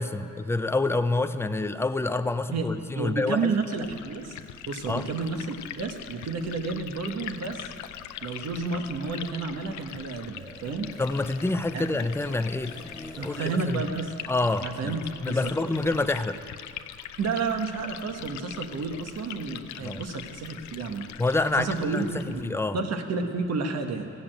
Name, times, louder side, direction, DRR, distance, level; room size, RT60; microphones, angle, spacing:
voice 1, 0.0-3.5 4.9-5.1 11.0-13.8 14.3-16.4 19.8-20.0 21.2-22.8, left 2 dB, 10° left, 10 dB, 0.5 m, -27 dB
voice 2, 3.0-4.3 4.7-7.7 8.2-10.9 11.7-11.9 13.2-14.1 14.6-15.7 17.2-21.1 21.6-24.1, right 4 dB, 55° right, 5 dB, 1.4 m, -31 dB
Liquid, 3.4-22.5, left 11 dB, 70° left, 0.6 m, -42 dB
sound 1, 8.0-16.1, right 1 dB, 15° right, 2.4 m, -52 dB
15.0 x 7.1 x 8.9 m, 2.5 s
cardioid pair, 90°, 30 cm